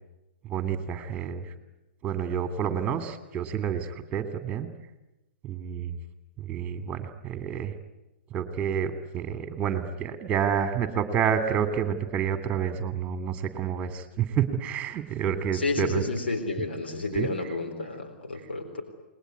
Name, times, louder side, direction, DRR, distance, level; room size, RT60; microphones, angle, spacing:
voice 1, 0.5-1.4 2.0-4.7 5.4-6.0 6.5-7.7 8.3-16.0 17.1-17.3, right 8 dB, 25° right, 9 dB, 2.7 m, -29 dB
voice 2, 15.5-18.8, left 3 dB, 80° left, 4 dB, 3.8 m, -31 dB
29.0 x 21.0 x 9.6 m, 1.0 s
figure-of-eight pair, 110°, 6 cm